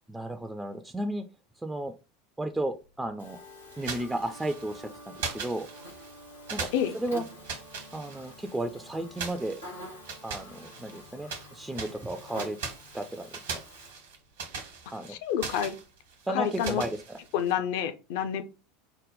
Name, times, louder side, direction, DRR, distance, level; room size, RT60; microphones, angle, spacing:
voice 1, 0.1-1.2 1.6-1.9 2.4-3.4 3.8-5.7 6.5-6.7 6.9-7.2 7.9-9.6 10.2-12.6 12.9-13.3 13.5-13.6 14.9-15.2 16.3-17.2, right 1 dB, 10° right, 0.4 m, -33 dB
Buzz, 3.2-13.9, left 1 dB, 90° left, 2.1 m, -49 dB
sound 1, 3.2-14.3, equal, 75° left, 1.2 m, -52 dB
sound 2, 3.7-4.8 5.2-6.1 6.5-8.6 9.2-11.5 11.7-17.5, right 5 dB, 65° right, 1.1 m, -40 dB
voice 2, 15.1-15.8 16.3-16.8 17.3-18.4, left 9 dB, 55° left, 0.5 m, -28 dB
4.9 x 2.2 x 3.8 m
figure-of-eight pair, 75°, 0 cm